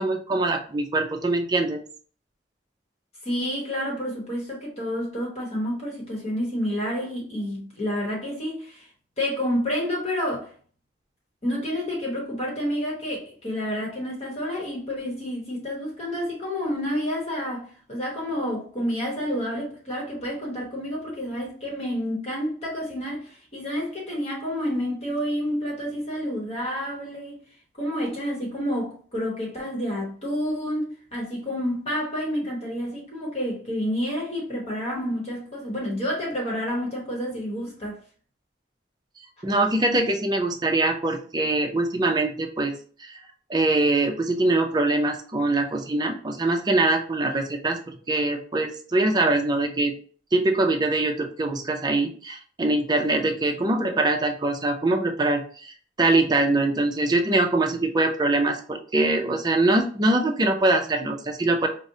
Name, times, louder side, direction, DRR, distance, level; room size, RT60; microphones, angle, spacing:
voice 1, 0.0-1.8 39.4-42.7 43.0-43.2 43.5-49.9 50.3-61.7, right 2 dB, 20° right, 0.5 m, -23 dB
voice 2, 3.2-8.9 9.2-10.5 11.4-27.4 27.8-38.0, equal, 35° left, 1.0 m, -29 dB
5.0 x 2.1 x 2.7 m
head